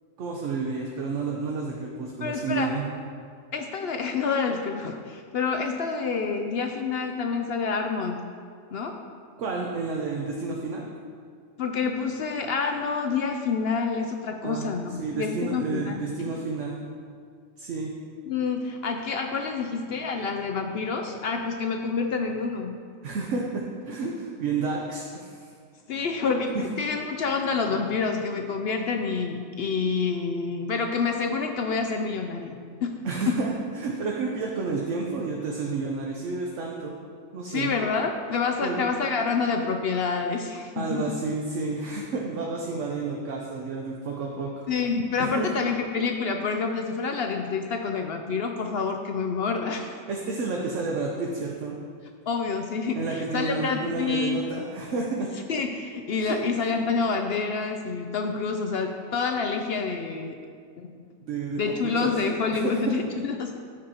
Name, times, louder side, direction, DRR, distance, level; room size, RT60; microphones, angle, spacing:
voice 1, 0.2-2.9 9.4-10.8 14.4-14.7 15.0-16.8 17.6-17.9 23.0-25.5 33.0-36.9 37.3-37.7 38.6-38.8 40.8-44.5 45.2-45.5 50.1-51.8 52.9-55.3 56.2-56.4 61.2-62.1 62.5-62.9, right 4 dB, 65° right, -1 dB, 1.1 m, -30 dB
voice 2, 2.2-2.7 3.5-8.2 8.7-9.0 11.6-16.4 18.3-22.8 25.9-33.0 33.3-33.4 37.5-41.1 44.7-49.9 52.3-54.4 55.5-60.4 60.8-60.9 61.6-63.6, left 5 dB, 65° left, 4 dB, 0.6 m, -28 dB
14.0 x 5.1 x 2.9 m, 2.1 s
omnidirectional pair, 1.4 m